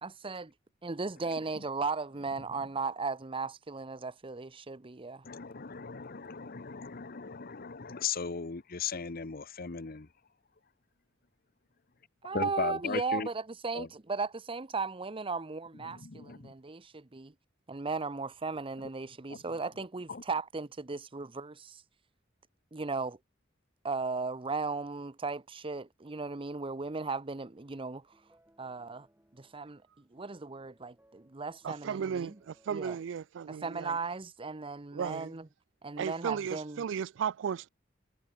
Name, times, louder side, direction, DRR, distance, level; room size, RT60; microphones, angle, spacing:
voice 1, 0.0-0.5 0.8-5.2 12.2-17.3 17.7-21.8 22.7-23.2 23.8-28.0 28.6-29.1 29.3-29.8 30.1-32.3 32.7-33.0 33.5-35.5 35.8-36.8, right 4 dB, 30° right, 0.8 m, -36 dB
voice 2, 5.2-10.1 12.3-13.3 13.7-13.9 15.8-16.5 20.1-20.2, left 5 dB, 50° left, 0.9 m, -37 dB
sound 1, 27.8-33.3, right 1 dB, 10° right, 5.1 m, -68 dB
voice 3, 31.6-34.0 34.9-35.4 36.0-37.7, right 7 dB, 70° right, 0.3 m, -35 dB
head